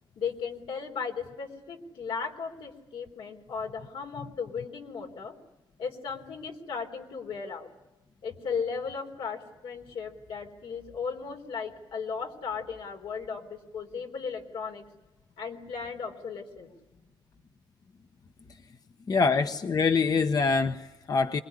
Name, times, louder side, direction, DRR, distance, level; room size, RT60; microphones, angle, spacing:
voice 1, 0.2-5.3 5.8-7.7 8.2-14.8 15.4-16.7, left 5 dB, 85° left, 2 dB, 4.1 m, -36 dB
voice 2, 19.1-21.4, left 4 dB, 45° left, 7 dB, 1.1 m, -25 dB
25.0 x 22.0 x 10.0 m, 1.0 s
cardioid pair, 100°, 9 cm